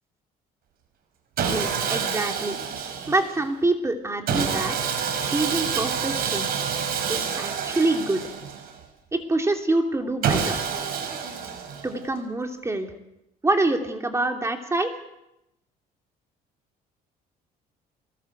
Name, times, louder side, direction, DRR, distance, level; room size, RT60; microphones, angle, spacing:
voice 1, 1.4-2.6 3.1-4.8 5.2-6.5 7.1-8.2 9.1-10.6 11.8-12.9 13.4-14.9, right 2 dB, 15° right, 4 dB, 3.1 m, -26 dB
Sawing, 1.4-3.4 4.3-8.8 10.2-12.0, right 6 dB, 65° right, 5.7 m, -28 dB
24.0 x 20.5 x 8.1 m, 0.86 s
cardioid pair, 110°, 17 cm